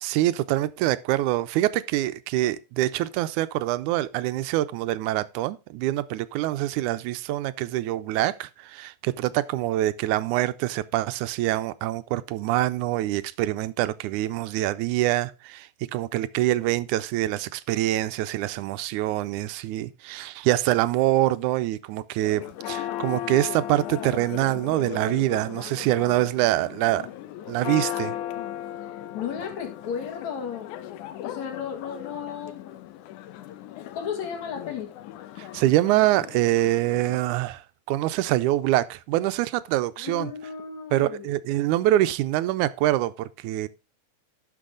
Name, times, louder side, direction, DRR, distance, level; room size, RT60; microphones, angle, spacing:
voice 1, 0.0-27.1 27.5-28.2 35.4-40.3 40.9-43.7, right 15 dB, 85° right, 2.0 m, -25 dB
Church bell, 22.2-37.2, left 12 dB, 85° left, 2.2 m, -37 dB
voice 2, 29.1-30.8 31.2-32.8 33.9-34.9 40.0-41.3, left 7 dB, 65° left, 3.1 m, -34 dB
11.5 x 6.3 x 3.8 m
omnidirectional pair, 3.5 m